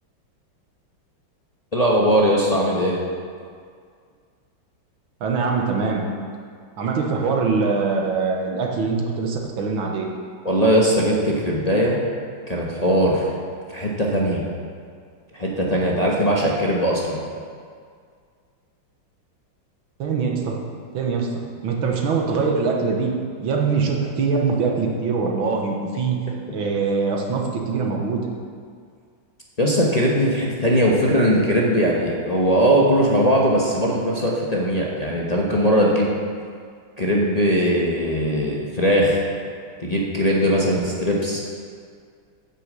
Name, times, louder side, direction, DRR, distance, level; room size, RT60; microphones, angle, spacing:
voice 1, 1.7-3.0 10.4-12.0 12.5-13.2 13.7-14.4 15.3-17.2 26.3-26.4 29.6-36.2 37.0-39.2 39.8-41.4, equal, 25° left, -4 dB, 1.0 m, -20 dB
voice 2, 5.2-6.1 6.8-10.1 20.0-20.6 20.9-21.3 21.6-23.1 23.4-26.2 26.5-28.3, right 4 dB, 90° right, 1 dB, 2.1 m, -23 dB
9.3 x 6.6 x 7.5 m, 2.1 s
omnidirectional pair, 2.2 m